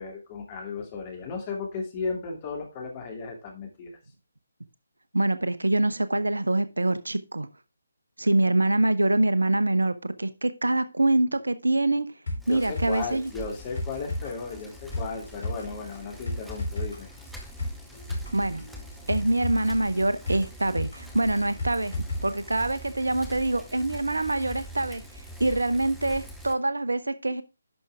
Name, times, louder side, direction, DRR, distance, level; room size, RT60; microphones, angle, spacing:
voice 1, 0.0-4.0 12.5-17.1, left 4 dB, 25° left, 2.5 m, -35 dB
voice 2, 5.1-7.5 8.2-12.1 12.5-13.3 18.3-18.7 19.1-21.9 22.2-25.0 25.4-27.4, right 2 dB, 75° right, 0.8 m, -25 dB
sound 1, 12.3-22.3 22.6-22.7, left 1 dB, 60° left, 4.0 m, -35 dB
Bicycle, 12.4-26.5, right 1 dB, ahead, 1.2 m, -44 dB
11.0 x 6.0 x 3.5 m
figure-of-eight pair, 145°, 0 cm